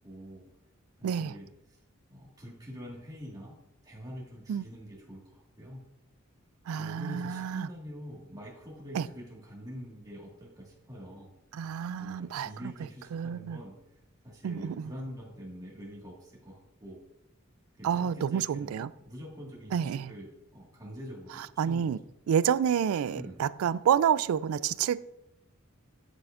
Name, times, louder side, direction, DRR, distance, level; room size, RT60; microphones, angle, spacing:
voice 1, 0.0-0.4 1.0-1.8 2.1-3.6 3.8-5.8 6.7-11.3 12.0-14.0 14.2-17.0 17.8-22.1 23.1-23.4, equal, 20° right, 1.8 m, -45 dB
voice 2, 6.7-7.7 8.9-9.0 11.5-12.5 13.1-13.6 14.4-14.7 17.8-18.9 19.7-20.1 21.6-22.0 22.3-25.0, right 8 dB, 85° right, 0.3 m, -28 dB
8.3 x 7.6 x 2.5 m
head